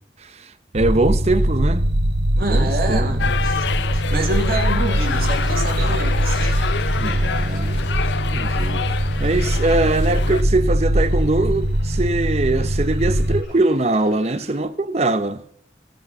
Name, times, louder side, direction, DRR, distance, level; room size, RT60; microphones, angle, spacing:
voice 1, 0.7-1.8 2.4-3.1 7.0-7.8 8.3-8.8 9.2-15.4, right 2 dB, 35° right, 0.6 m, -22 dB
sound 1, 0.7-13.4, equal, 70° right, 0.9 m, -21 dB
voice 2, 2.3-3.7 3.9-6.7, right 2 dB, 55° right, 1.9 m, -27 dB
sound 2, 3.2-10.4, left 6 dB, 80° left, 0.5 m, -28 dB
sound 3, 4.6-14.6, left 1 dB, 55° left, 5.8 m, -44 dB
16.5 x 6.5 x 5.4 m
head